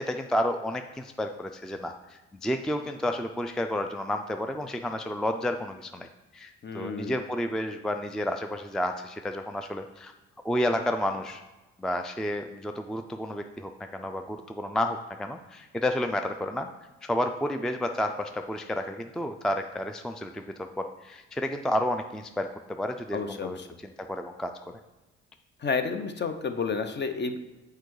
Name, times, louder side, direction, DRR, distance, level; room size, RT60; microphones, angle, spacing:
voice 1, 0.0-6.1 6.3-10.1 10.4-11.4 11.8-16.7 17.0-24.5, left 1 dB, ahead, 6 dB, 0.3 m, -31 dB
voice 2, 6.6-7.2 23.1-23.7 25.6-27.4, left 5 dB, 35° left, 8 dB, 0.8 m, -31 dB
6.7 x 4.7 x 4.7 m, 1.1 s
cardioid pair, 90°, 30 cm